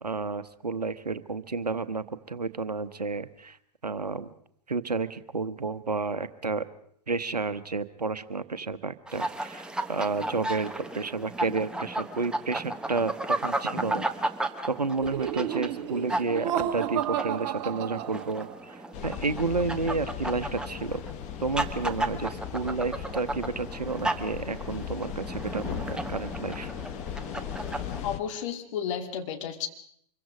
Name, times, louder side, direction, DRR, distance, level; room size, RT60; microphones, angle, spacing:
voice 1, 0.0-3.6 3.8-4.3 4.7-6.6 7.1-14.1 14.7-21.0 21.4-26.7, right 4 dB, 85° right, 13 dB, 1.0 m, -31 dB
sound 1, 9.1-28.1, right 1 dB, 5° right, 1.2 m, -34 dB
Laughter, 15.0-18.7, right 10 dB, 45° right, 1.3 m, -32 dB
sound 2, 18.9-28.2, left 10 dB, 35° left, 1.2 m, -38 dB
voice 2, 28.0-29.7, left 8 dB, 50° left, 5 dB, 2.5 m, -32 dB
25.0 x 22.5 x 5.0 m, 0.66 s
figure-of-eight pair, 100°, 20 cm